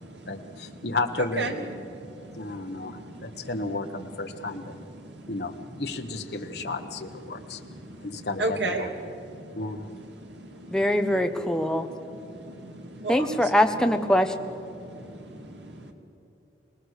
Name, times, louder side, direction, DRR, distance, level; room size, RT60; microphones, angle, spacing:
voice 1, 0.3-1.8 2.4-4.8 5.3-7.6 8.0-9.2 9.5-9.9, left 3 dB, 65° left, 4 dB, 1.2 m, -33 dB
voice 2, 1.9-3.5 5.0-5.4 6.6-6.7 7.3-9.6 10.2-10.9 11.8-13.5 14.7-15.9, right 2 dB, 85° right, 3 dB, 2.6 m, -36 dB
voice 3, 10.7-11.9 13.1-14.3, left 1 dB, 5° left, 5 dB, 1.0 m, -22 dB
24.5 x 19.5 x 6.6 m, 2.8 s
head